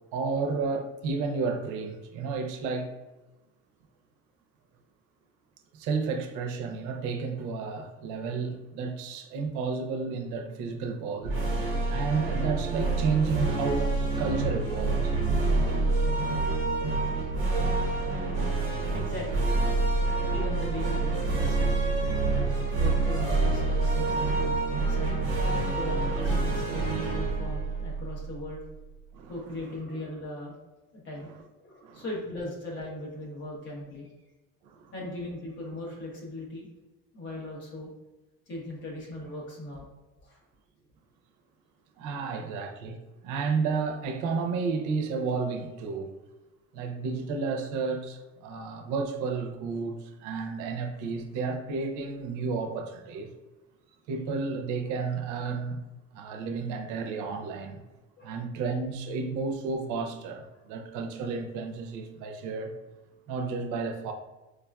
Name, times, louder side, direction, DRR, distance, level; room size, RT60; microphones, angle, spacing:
voice 1, 0.1-2.9 5.7-11.3 11.9-13.9 14.2-15.2 26.2-26.5 29.1-29.3 31.8-32.0 34.6-34.9 42.0-43.0 43.2-46.1 46.7-53.3 54.1-55.8 56.1-57.8 58.2-62.7 63.3-64.1, right 4 dB, 90° right, 0.5 m, -32 dB
sound 1, 11.2-28.7, right 3 dB, 45° right, 1.1 m, -27 dB
voice 2, 18.9-19.5 20.3-22.0 22.8-25.2 25.7-28.6 29.3-30.6 30.9-31.3 31.6-34.1 34.9-36.7 37.1-37.9 38.5-39.8 40.2-40.4 42.3-42.4 58.2-58.4, left 1 dB, 40° left, 1.0 m, -39 dB
4.6 x 2.4 x 2.2 m
cardioid pair, 175°, 29 cm